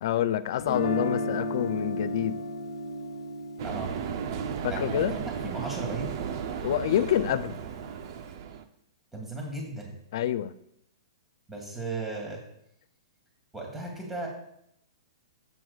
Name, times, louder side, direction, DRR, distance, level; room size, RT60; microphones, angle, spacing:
voice 1, 0.0-2.4 4.6-5.1 6.6-7.6 10.1-10.5, left 11 dB, 55° left, 0.4 m, -27 dB
Guitar, 0.6-6.6, left 1 dB, 75° left, 1.1 m, -34 dB
voice 2, 3.6-3.9 4.7-6.2 9.1-9.9 11.5-12.4 13.5-14.3, right 2 dB, 10° right, 2.0 m, -36 dB
sound 1, 3.6-8.6, right 7 dB, 50° right, 0.7 m, -34 dB
10.5 x 7.9 x 2.4 m
hypercardioid pair, 150°, 3 cm